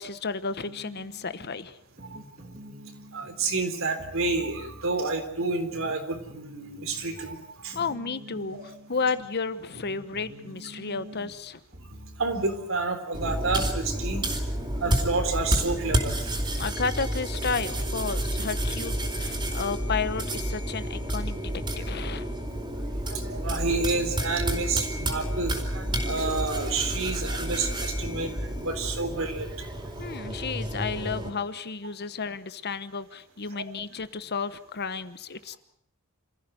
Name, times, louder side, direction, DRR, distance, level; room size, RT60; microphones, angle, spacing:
voice 1, 0.0-1.8 7.7-11.6 16.6-22.3 30.0-35.6, left 5 dB, 50° left, 12 dB, 1.1 m, -32 dB
sound 1, 0.7-12.7, equal, 40° right, 2.6 m, -48 dB
voice 2, 3.1-7.8 8.5-8.6 12.2-14.2 14.8-16.3 23.1-29.8 33.5-33.6, right 3 dB, 65° right, 7 dB, 3.8 m, -29 dB
sound 2, 13.1-31.3, right 1 dB, 20° right, 4.2 m, -30 dB
27.5 x 15.0 x 8.0 m, 0.71 s
head